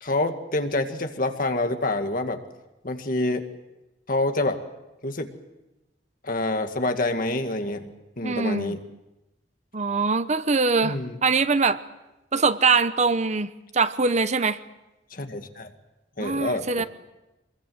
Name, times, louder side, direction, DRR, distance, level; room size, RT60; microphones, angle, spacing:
voice 1, 0.0-2.4 2.8-3.5 4.1-4.6 5.0-5.3 6.2-7.9 8.2-8.8 10.8-11.2 15.1-15.7 16.2-16.9, left 2 dB, 50° left, 6 dB, 2.0 m, -27 dB
voice 2, 8.2-8.7 9.7-11.8 12.3-14.6 16.2-16.9, right 4 dB, 40° right, 13 dB, 0.9 m, -23 dB
25.5 x 21.5 x 7.9 m, 0.99 s
head